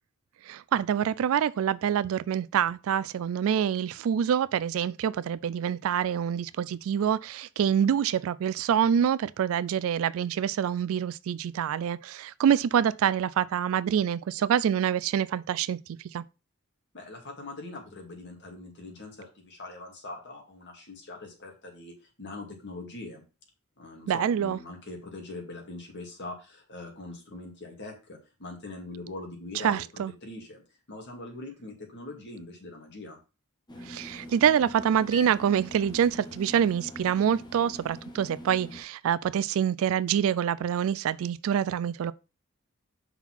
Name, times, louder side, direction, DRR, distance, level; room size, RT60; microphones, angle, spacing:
voice 1, 0.4-15.8 16.1-16.2 24.1-24.6 29.5-30.1 33.8-42.1, right 8 dB, 70° right, 0.3 m, -26 dB
voice 2, 16.9-23.2 23.8-29.8 30.2-30.6 30.9-33.2, left 2 dB, 55° left, 2.2 m, -42 dB
sound 1, 33.7-38.8, left 1 dB, 20° left, 1.0 m, -44 dB
5.8 x 3.9 x 6.0 m
head